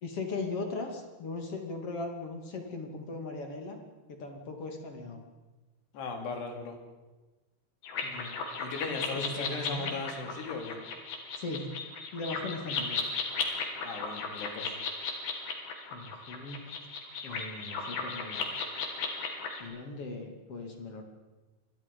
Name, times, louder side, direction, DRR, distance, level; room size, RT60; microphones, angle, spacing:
voice 1, 0.0-3.8 4.1-5.2 8.0-8.3 9.0-10.0 11.4-11.8 12.1-13.0 15.9-16.8 17.2-18.5 19.6-21.0, left 3 dB, 40° left, 4 dB, 2.9 m, -38 dB
voice 2, 5.9-6.8 8.6-10.8 13.8-14.8, left 4 dB, 90° left, 3 dB, 5.1 m, -37 dB
sound 1, 7.8-19.6, left 5 dB, 70° left, 4.5 m, -36 dB
27.5 x 21.5 x 5.4 m, 1.2 s
omnidirectional pair, 4.6 m